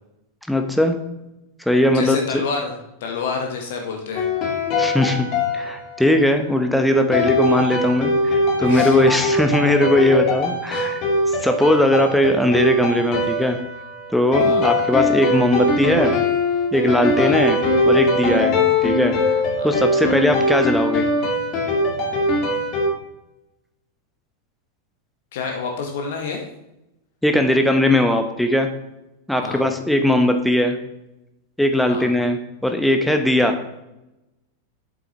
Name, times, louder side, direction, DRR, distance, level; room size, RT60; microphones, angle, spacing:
voice 1, 0.5-1.0 1.7-2.2 4.8-5.3 5.5-11.0 11.4-13.6 14.1-16.1 16.7-17.6 17.9-18.6 18.8-19.2 19.6-21.1 27.2-28.7 29.3-30.8 31.6-33.6, left 1 dB, ahead, 6 dB, 0.9 m, -19 dB
voice 2, 1.9-2.7 3.0-4.3 8.6-9.2 10.7-10.9 14.4-14.6 17.1-17.4 19.6-19.7 20.0-20.3 25.3-26.4 29.4-29.6 31.9-32.1, left 4 dB, 55° left, 2 dB, 1.2 m, -29 dB
sound 1, 4.2-6.4 7.1-22.9, left 2 dB, 35° left, 1.8 m, -21 dB
8.1 x 7.8 x 3.0 m, 0.91 s
figure-of-eight pair, 90°, 0 cm